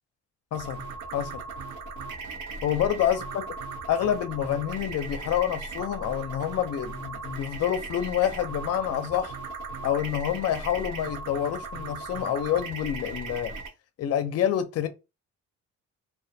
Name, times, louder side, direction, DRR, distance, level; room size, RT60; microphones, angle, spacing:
voice 1, 0.5-0.8 1.1-1.4 2.6-3.4 3.9-9.4 9.8-13.5 14.0-14.9, left 10 dB, 55° left, 0.5 m, -27 dB
sound 1, 0.5-13.7, right 3 dB, 80° right, 0.7 m, -38 dB
2.2 x 2.2 x 2.6 m
cardioid pair, 90°, 30 cm